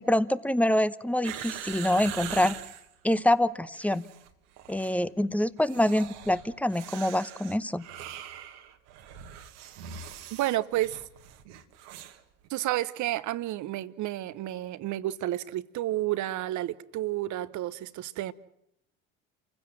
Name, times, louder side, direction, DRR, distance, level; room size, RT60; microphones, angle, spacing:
voice 1, 0.0-2.6 3.0-4.0 4.7-7.8, left 1 dB, 5° left, 0.9 m, -25 dB
sound 1, 1.2-2.9 3.6-4.3 4.6-5.0 5.6-12.2 12.4-12.5, right 10 dB, 75° right, 1.7 m, -42 dB
voice 2, 10.3-11.0 12.5-18.3, right 14 dB, 55° right, 1.0 m, -31 dB
28.5 x 16.0 x 7.6 m
hypercardioid pair, 65°, 35 cm